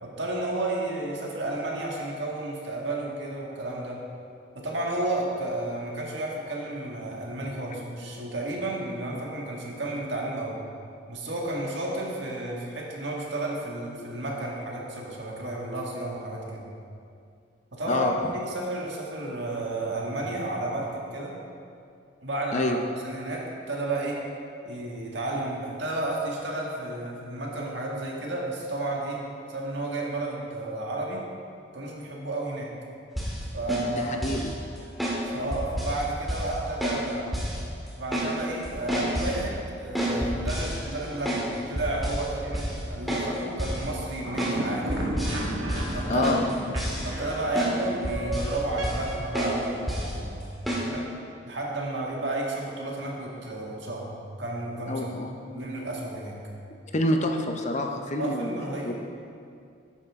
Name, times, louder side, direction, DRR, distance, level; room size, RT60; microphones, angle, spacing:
voice 1, 0.0-4.0 4.6-10.6 11.1-16.7 17.7-21.4 22.2-22.8 23.0-24.2 24.7-29.2 29.5-31.2 31.7-32.7 33.5-34.3 35.3-37.4 38.0-45.1 45.9-46.3 47.0-50.5 50.8-51.1 51.4-54.1 54.4-55.1 55.5-56.4 58.2-58.9, right 2 dB, 65° right, -2 dB, 1.8 m, -32 dB
sound 1, 33.2-33.4 33.7-34.5 35.0-35.2 35.5-36.0 36.3-36.5 36.8-37.0 37.3-37.6 37.9-38.3 38.6-39.4 40.0-41.5 41.8-42.3 42.5-42.8 43.1-43.3 43.6-43.8 44.4-44.6 44.9-45.4 45.7-45.9 46.2-47.3 47.6-47.7 48.0-48.6 48.8-49.1 49.3-49.6 49.9-50.1 50.7-50.8, equal, ahead, 1.8 m, -29 dB
voice 2, 33.9-34.5 46.1-46.4 54.9-55.4 56.9-58.5 58.8-58.9, left 1 dB, 35° left, 4 dB, 0.7 m, -27 dB
sound 2, 44.2-49.4, right 2 dB, 85° right, 1.6 m, -33 dB
11.5 x 9.2 x 3.6 m, 2.4 s
head